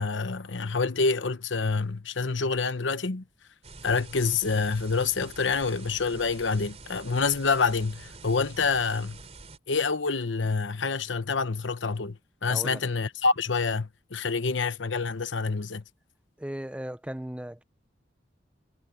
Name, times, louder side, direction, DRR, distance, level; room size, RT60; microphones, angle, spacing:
voice 1, 0.0-3.2 3.8-9.2 9.7-15.8, left 4 dB, 90° left, 1.0 m, -27 dB
sound 1, 3.6-9.6, right 3 dB, 35° right, 4.3 m, -46 dB
voice 2, 12.5-12.8 16.4-17.6, equal, 5° right, 0.6 m, -36 dB
head